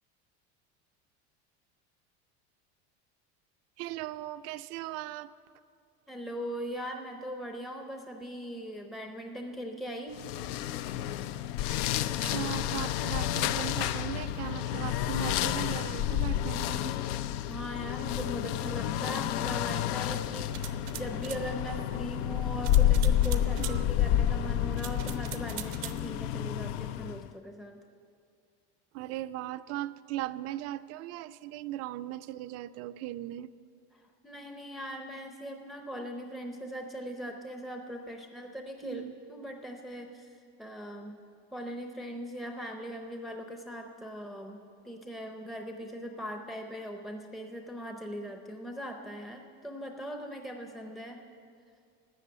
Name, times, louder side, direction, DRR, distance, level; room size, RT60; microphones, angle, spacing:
voice 1, 3.8-5.3 12.2-16.9 23.6-23.9 28.9-33.5 38.8-39.1, right 15 dB, 50° right, 14 dB, 0.5 m, -38 dB
voice 2, 6.1-10.2 17.4-27.8 34.2-39.0 39.3-40.3 40.6-41.2 41.5-44.6 44.8-51.2, equal, ahead, 3 dB, 0.6 m, -40 dB
sound 1, 10.2-27.3, left 11 dB, 75° left, 0.6 m, -30 dB
sound 2, 20.5-21.4 22.6-23.8 24.7-26.0, right 16 dB, 80° right, 0.8 m, -42 dB
13.0 x 8.2 x 9.3 m, 2.3 s
cardioid pair, 155°, 32 cm